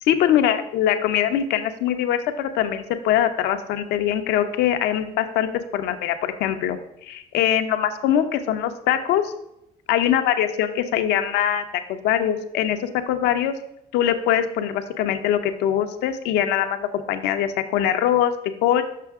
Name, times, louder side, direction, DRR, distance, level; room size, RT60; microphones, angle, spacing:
voice 1, 0.0-9.3 9.9-12.8 13.1-13.5 13.9-18.3 18.6-18.8, left 10 dB, 85° left, 8 dB, 0.7 m, -22 dB
6.7 x 5.8 x 3.5 m, 0.81 s
cardioid pair, 110°, 17 cm